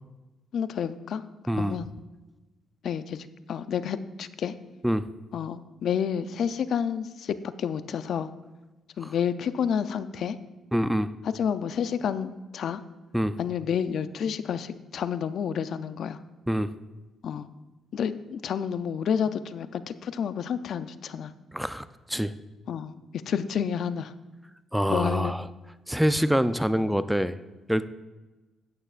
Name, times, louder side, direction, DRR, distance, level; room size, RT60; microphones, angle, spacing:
voice 1, 0.5-1.2 1.6-1.9 2.8-4.5 5.3-8.3 9.0-10.4 11.2-12.8 13.4-16.2 17.2-17.5 17.9-21.3 22.7-24.1 24.9-25.3, left 7 dB, 65° left, 13 dB, 0.5 m, -30 dB
voice 2, 1.5-1.8 4.8-5.1 10.7-11.1 13.1-13.4 16.5-16.7 21.5-22.3 24.7-25.5 25.9-27.4 27.7-27.9, equal, ahead, 12 dB, 0.4 m, -25 dB
13.5 x 8.8 x 2.5 m, 1.1 s
cardioid pair, 90°, 0 cm